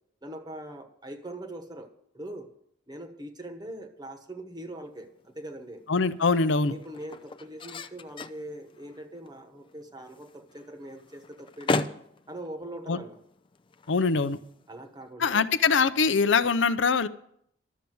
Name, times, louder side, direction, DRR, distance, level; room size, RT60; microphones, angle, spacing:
voice 1, 0.2-2.5 2.9-5.8 6.6-11.9 12.3-13.2 14.7-15.5, right 1 dB, 20° right, 7 dB, 1.2 m, -42 dB
sound 1, 4.8-15.1, left 3 dB, 25° left, 0.5 m, -38 dB
voice 2, 5.9-6.7 12.9-13.0 13.9-14.4 15.2-17.1, left 4 dB, 70° left, 12 dB, 0.6 m, -23 dB
12.0 x 7.0 x 9.3 m, 0.70 s
head